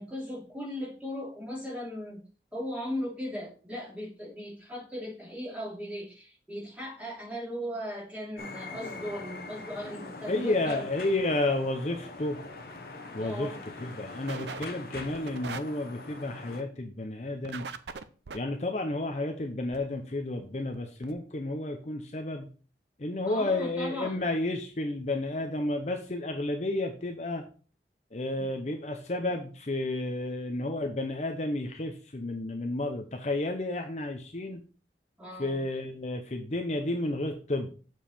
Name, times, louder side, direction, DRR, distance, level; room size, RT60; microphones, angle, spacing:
voice 1, 0.0-2.2 2.5-10.8 13.2-13.6 23.2-24.2 28.4-28.7 35.2-35.6, equal, 10° right, -5 dB, 2.7 m, -37 dB
sound 1, 8.4-16.6, left 3 dB, 55° left, 1.1 m, -43 dB
voice 2, 10.3-12.4 13.1-17.6 18.3-22.5 23.0-27.4 28.1-34.6 35.4-37.7, left 2 dB, 40° left, 4 dB, 0.7 m, -31 dB
sound 2, 12.0-12.1 12.5-12.8 13.2-13.3 13.6-13.7 14.3-14.7 14.9-15.6 17.4-18.4 19.7-19.8 20.4-20.5 20.7-20.8 21.0-21.1, right 5 dB, 80° right, 0.6 m, -40 dB
7.2 x 4.6 x 4.4 m, 0.38 s
head